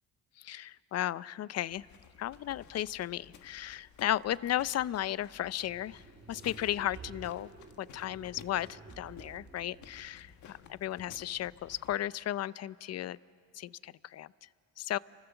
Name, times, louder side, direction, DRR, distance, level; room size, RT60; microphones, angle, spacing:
voice 1, 0.4-1.9 2.2-6.0 6.3-7.5 7.8-13.2 13.5-14.3 14.8-15.0, left 12 dB, 55° left, 19 dB, 0.5 m, -35 dB
sound 1, 1.7-12.0, left 7 dB, 75° left, 1.5 m, -56 dB
sound 2, 5.5-10.4, right 5 dB, 40° right, 1.8 m, -52 dB
sound 3, 6.3-7.9, left 1 dB, 10° left, 4.2 m, -64 dB
28.5 x 24.0 x 7.0 m, 2.3 s
cardioid pair, 90°, 30 cm